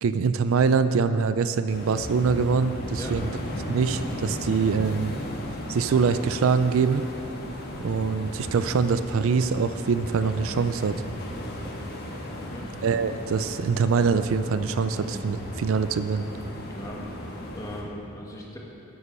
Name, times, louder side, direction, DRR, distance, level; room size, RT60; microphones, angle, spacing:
voice 1, 0.0-3.3 3.7-5.2 5.7-7.0 7.8-11.0 12.8-16.3, right 5 dB, 70° right, 11 dB, 0.4 m, -24 dB
sound 1, 1.7-17.8, equal, 50° left, 1.4 m, -36 dB
voice 2, 16.7-17.0 17.5-18.6, equal, 15° left, -2 dB, 1.3 m, -39 dB
9.6 x 8.3 x 6.2 m, 2.9 s
head